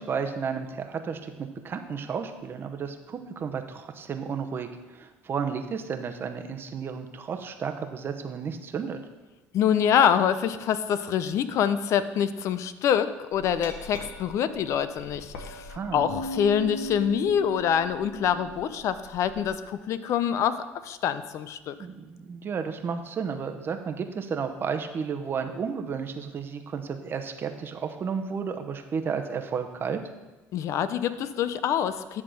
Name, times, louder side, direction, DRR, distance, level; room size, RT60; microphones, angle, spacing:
voice 1, 0.0-9.0 15.7-16.1 21.8-30.0, right 6 dB, 40° right, 6 dB, 0.8 m, -32 dB
voice 2, 9.5-21.7 30.5-32.2, left 8 dB, 60° left, 13 dB, 0.5 m, -26 dB
Glass, 13.3-19.5, left 1 dB, 80° left, 1.2 m, -39 dB
10.5 x 3.7 x 6.2 m, 1.1 s
supercardioid pair, 90°, 6 cm